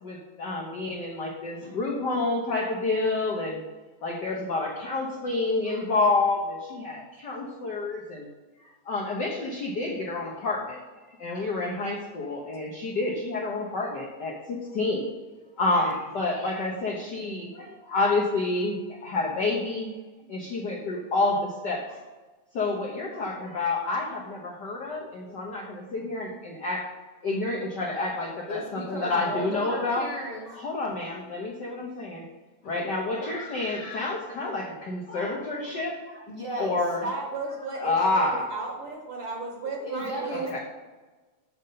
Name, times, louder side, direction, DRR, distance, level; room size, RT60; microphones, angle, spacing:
voice 1, 0.0-3.6 4.0-8.3 8.9-10.8 11.2-15.1 15.6-19.9 20.3-22.0 22.5-26.8 27.2-30.1 30.5-32.2 32.6-36.2 36.6-37.1 37.8-38.4 40.3-40.6, left 3 dB, 70° left, -1 dB, 1.0 m, -29 dB
voice 2, 28.5-30.5 36.3-36.8 39.8-40.6, right 1 dB, 55° left, -3 dB, 1.3 m, -34 dB
voice 3, 37.0-40.6, right 3 dB, 50° right, 0 dB, 1.6 m, -35 dB
7.9 x 6.5 x 5.7 m, 1.3 s
omnidirectional pair, 3.4 m